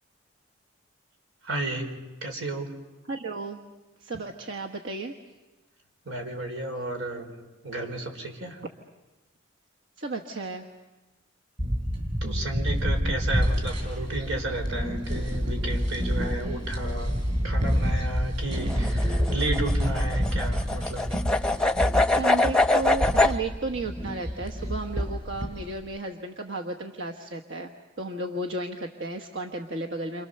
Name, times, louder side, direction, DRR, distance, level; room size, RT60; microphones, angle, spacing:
voice 1, 1.4-1.9 2.2-2.7 6.0-7.3 7.6-8.6 12.2-21.3, right 2 dB, 90° right, 4 dB, 4.8 m, -33 dB
voice 2, 3.1-3.6 4.0-5.1 10.0-10.7 12.2-12.7 22.0-27.7 28.0-30.3, right 2 dB, 65° right, 1 dB, 1.4 m, -34 dB
sound 1, 11.6-25.8, equal, 35° right, 7.2 m, -28 dB
sound 2, 18.6-23.4, left 2 dB, 5° left, 0.8 m, -24 dB
29.5 x 27.0 x 6.8 m, 1.2 s
head